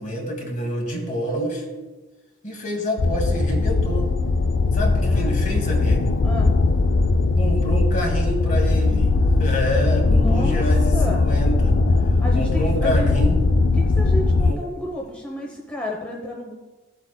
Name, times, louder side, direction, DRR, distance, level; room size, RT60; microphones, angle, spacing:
voice 1, 0.0-1.6 2.4-4.1 4.7-6.2 7.4-11.8 12.3-13.4 14.4-14.6, equal, 40° left, 0 dB, 2.1 m, -27 dB
sound 1, 3.0-14.5, left 3 dB, 65° left, 0.4 m, -19 dB
voice 2, 5.0-5.3 6.2-6.5 10.1-10.6 10.9-11.2 12.2-13.1 13.7-16.5, left 1 dB, 5° left, -2 dB, 0.9 m, -31 dB
16.5 x 8.0 x 2.2 m, 1.2 s
head